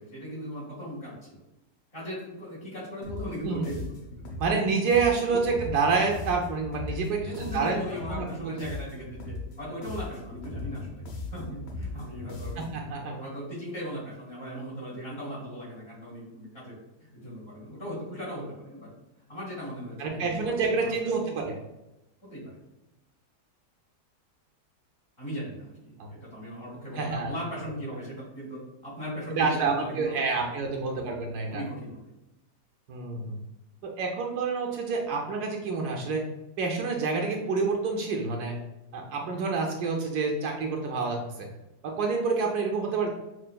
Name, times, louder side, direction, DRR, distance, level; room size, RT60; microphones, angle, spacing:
voice 1, 0.0-1.4 1.9-4.0 5.2-5.6 6.8-18.9 19.3-21.4 22.2-22.6 25.2-30.6 30.8-31.1 31.5-32.1, equal, 35° left, -7 dB, 1.7 m, -38 dB
sound 1, 3.0-12.9, left 2 dB, 85° left, 1.4 m, -39 dB
voice 2, 4.4-7.8 8.1-8.6 12.6-13.1 20.0-21.6 27.0-27.3 29.4-31.6 32.9-33.4 33.8-36.2 36.6-38.5 38.9-41.5 41.8-43.1, right 4 dB, 75° right, 1 dB, 1.1 m, -28 dB
6.0 x 2.4 x 2.2 m, 0.95 s
omnidirectional pair, 1.8 m